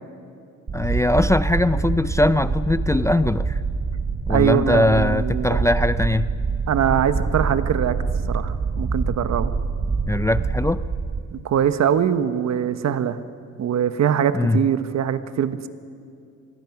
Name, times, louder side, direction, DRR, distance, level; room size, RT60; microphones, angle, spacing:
voice 1, 0.7-3.6 4.3-6.3 10.1-10.8 14.3-14.6, left 1 dB, 10° left, 14 dB, 0.4 m, -21 dB
sound 1, 0.7-11.2, right 4 dB, 35° right, 1.6 m, -25 dB
voice 2, 4.3-5.6 6.7-8.0 8.3-9.5 11.3-13.2 13.6-15.7, right 9 dB, 60° right, 11 dB, 1.2 m, -22 dB
25.0 x 21.5 x 6.0 m, 2.4 s
cardioid pair, 90°, 30 cm